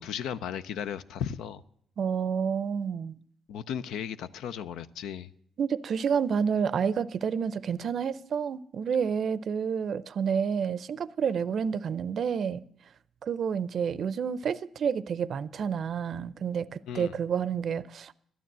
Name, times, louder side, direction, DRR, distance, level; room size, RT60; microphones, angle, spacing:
voice 1, 0.0-1.6 3.5-5.3 16.9-17.2, left 8 dB, 85° left, 0.5 m, -35 dB
voice 2, 2.0-3.1 5.6-12.6 13.2-18.1, right 7 dB, 55° right, 0.5 m, -29 dB
12.0 x 9.4 x 7.4 m
cardioid pair, 90°, 0 cm